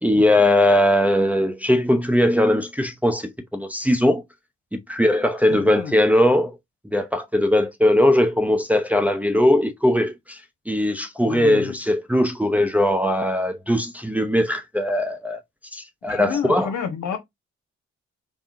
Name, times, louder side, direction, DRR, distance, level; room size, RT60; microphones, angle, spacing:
voice 1, 0.0-4.2 4.9-6.6 6.9-10.4 10.7-15.4 15.7-16.7, left 1 dB, 5° right, 0.7 m, -20 dB
voice 2, 5.5-6.0 11.3-11.8 16.1-17.2, left 7 dB, 60° left, 1.1 m, -29 dB
3.7 x 3.5 x 2.6 m
hypercardioid pair, 45°, 34 cm